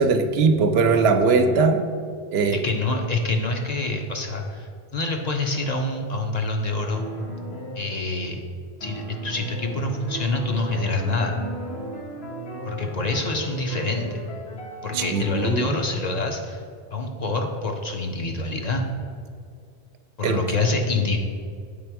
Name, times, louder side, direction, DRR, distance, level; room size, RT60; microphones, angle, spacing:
voice 1, 0.0-1.8 2.3-2.6 14.9-15.8 20.2-20.4, right 4 dB, 80° right, 6 dB, 0.8 m, -20 dB
voice 2, 2.5-7.0 7.7-8.4 8.8-11.4 12.6-14.2 14.8-16.6 16.9-18.9 20.2-21.2, left 2 dB, 50° left, 2 dB, 0.6 m, -26 dB
sound 1, 5.5-5.7 6.9-8.0 8.8-15.5, equal, 85° left, 1.3 m, -36 dB
7.8 x 3.4 x 4.6 m, 2.2 s
omnidirectional pair, 1.0 m